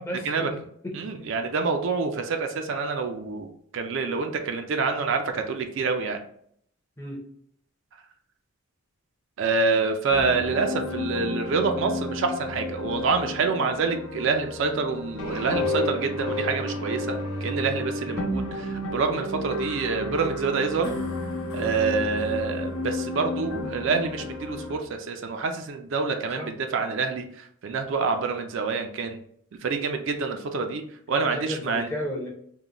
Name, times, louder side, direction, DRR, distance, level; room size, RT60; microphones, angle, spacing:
voice 1, 0.0-1.3 7.0-7.2 18.1-18.3 26.4-26.5 31.1-32.3, equal, 10° left, -1 dB, 0.5 m, -35 dB
voice 2, 0.9-6.3 9.4-20.9 21.5-29.2 29.6-30.8 31.1-31.9, right 4 dB, 60° right, 5 dB, 0.3 m, -27 dB
sound 1, 10.1-24.8, left 2 dB, 70° left, 0.7 m, -31 dB
3.8 x 2.1 x 2.9 m, 0.66 s
head